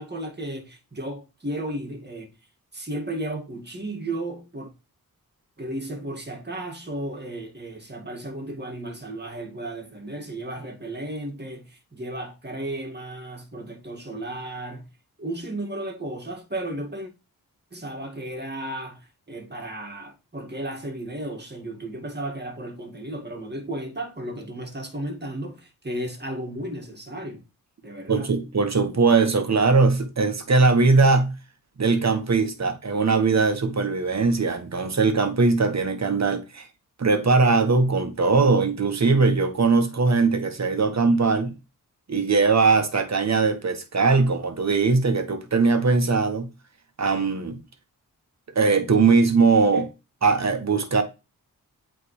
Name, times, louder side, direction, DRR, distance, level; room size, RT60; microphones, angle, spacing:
voice 1, 0.0-2.3 2.7-4.7 5.6-14.9 15.2-17.1 17.7-27.4 27.8-28.3 49.7-49.9, right 1 dB, 30° right, 1.9 m, -34 dB
voice 2, 28.1-31.3 31.8-36.7 37.0-41.5 42.1-46.5 47.0-47.6 48.5-49.9 50.2-51.0, right 4 dB, 45° right, 1.4 m, -20 dB
8.4 x 3.5 x 3.2 m
cardioid pair, 55°, 36 cm